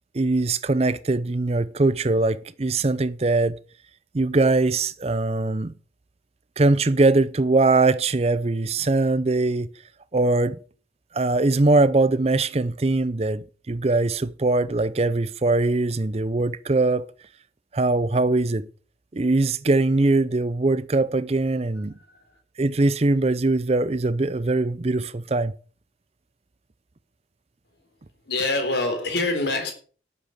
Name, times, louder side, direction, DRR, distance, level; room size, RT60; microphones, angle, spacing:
voice 1, 0.1-3.6 4.1-5.7 6.6-9.7 10.1-10.6 11.1-17.0 17.7-18.7 19.1-21.9 22.6-25.5, right 2 dB, 35° right, 0.5 m, -21 dB
voice 2, 28.3-29.7, left 2 dB, 65° left, 3.9 m, -25 dB
12.0 x 8.2 x 6.6 m
head